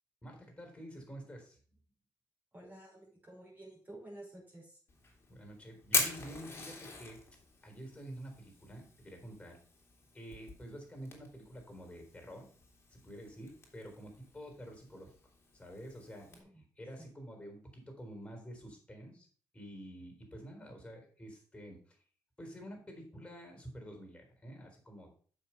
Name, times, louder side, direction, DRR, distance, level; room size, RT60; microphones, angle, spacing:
voice 1, 0.2-1.6 5.3-7.2 7.6-9.6 10.1-12.5 12.9-15.1 15.5-16.3 16.6-19.3 19.5-22.0 22.4-25.1, equal, 15° left, 3 dB, 3.9 m, -49 dB
voice 2, 2.5-4.8 16.3-16.6 17.0-17.1, right 1 dB, 25° right, -1 dB, 5.2 m, -52 dB
Fire, 4.9-16.4, left 3 dB, 30° left, 2.8 m, -42 dB
7.4 x 5.8 x 5.7 m, 0.43 s
cardioid pair, 90°, 7 cm